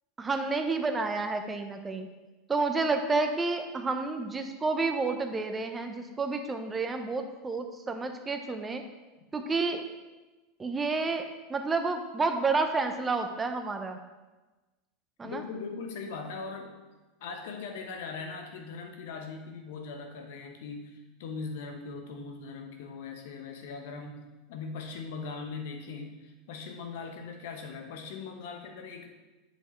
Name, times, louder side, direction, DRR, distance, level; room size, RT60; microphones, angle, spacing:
voice 1, 0.2-2.1 2.5-8.8 9.3-9.8 10.6-14.0 15.2-15.4, right 3 dB, 20° right, 6 dB, 0.8 m, -30 dB
voice 2, 15.2-16.7 17.2-29.1, left 4 dB, 70° left, 3 dB, 1.1 m, -40 dB
7.8 x 6.4 x 3.2 m, 1.2 s
hypercardioid pair, 90°, 0 cm